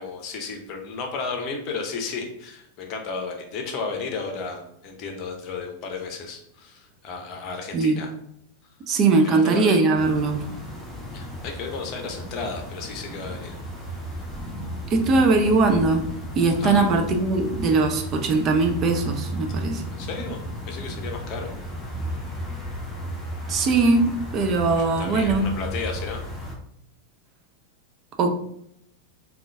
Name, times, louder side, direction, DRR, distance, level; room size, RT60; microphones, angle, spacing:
voice 1, 0.0-8.1 8.6-8.8 9.2-9.7 11.1-13.6 16.6-16.9 19.9-20.4 20.7-21.5 24.8-26.2, left 4 dB, 40° left, 3 dB, 0.7 m, -33 dB
voice 2, 8.9-10.4 14.9-16.1 16.4-19.8 23.5-25.5 28.2-28.4, right 3 dB, 30° right, 4 dB, 0.4 m, -20 dB
sound 1, 9.9-26.5, right 1 dB, 5° left, 1.0 m, -34 dB
3.7 x 2.4 x 3.3 m, 0.74 s
figure-of-eight pair, 90°, 0 cm